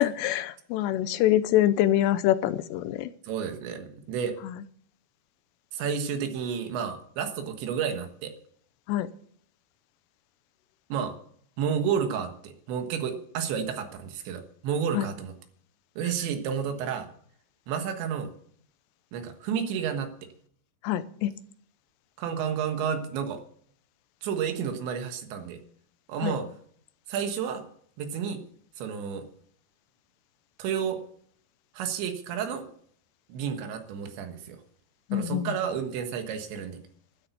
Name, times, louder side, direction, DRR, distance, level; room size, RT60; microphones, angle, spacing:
voice 1, 0.0-3.1 4.4-4.6 8.9-9.1 14.9-15.1 20.8-21.3 26.2-26.4 35.1-35.5, left 13 dB, 80° left, 13 dB, 2.8 m, -25 dB
voice 2, 3.2-4.4 5.7-8.3 10.9-11.2 11.6-15.3 16.0-17.1 17.7-18.3 19.1-20.3 22.2-23.4 24.2-25.6 26.1-26.5 27.1-27.6 28.0-28.4 28.8-29.3 30.6-31.0 31.8-32.7 33.3-34.6 35.1-36.8, right 7 dB, 80° right, 6 dB, 3.7 m, -31 dB
13.0 x 8.7 x 8.3 m, 0.62 s
omnidirectional pair, 5.2 m